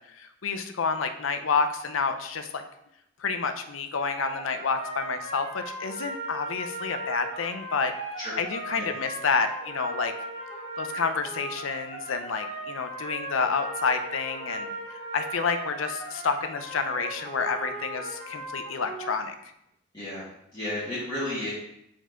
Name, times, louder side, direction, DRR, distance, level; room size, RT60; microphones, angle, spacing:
voice 1, 0.0-2.6 3.2-7.9 8.4-10.1 10.8-19.3, left 5 dB, 80° left, 8 dB, 0.6 m, -29 dB
sound 1, 4.0-19.1, right 2 dB, 65° right, 1.8 m, -37 dB
voice 2, 19.9-20.2 20.5-21.5, left 1 dB, 20° left, -11 dB, 1.7 m, -32 dB
4.7 x 4.5 x 4.5 m, 0.79 s
head